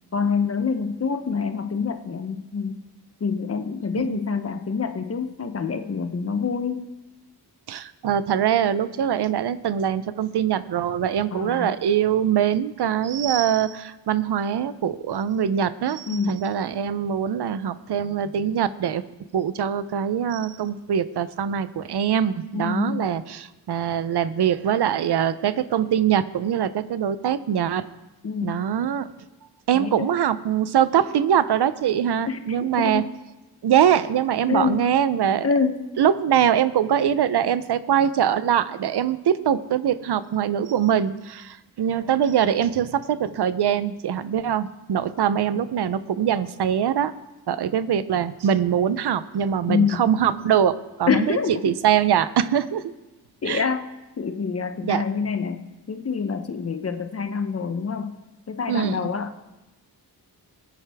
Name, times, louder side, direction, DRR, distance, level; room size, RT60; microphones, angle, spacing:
voice 1, 0.1-2.8 3.2-6.9 11.3-11.7 16.1-16.4 22.5-23.1 28.2-28.6 29.7-30.1 32.3-33.1 34.5-34.9 35.4-35.9 49.7-50.0 51.1-51.8 53.4-53.8 54.2-58.2 58.5-59.4, left 5 dB, 40° left, 8 dB, 0.7 m, -26 dB
voice 2, 7.7-19.0 19.3-27.9 28.4-29.1 29.7-33.0 33.6-35.5 36.0-47.1 47.5-51.4 51.6-52.9 53.4-53.7 54.8-55.0 58.7-59.0, right 9 dB, 80° right, 14 dB, 0.6 m, -23 dB
21.0 x 9.2 x 3.5 m, 1.1 s
wide cardioid pair, 175°, 40 cm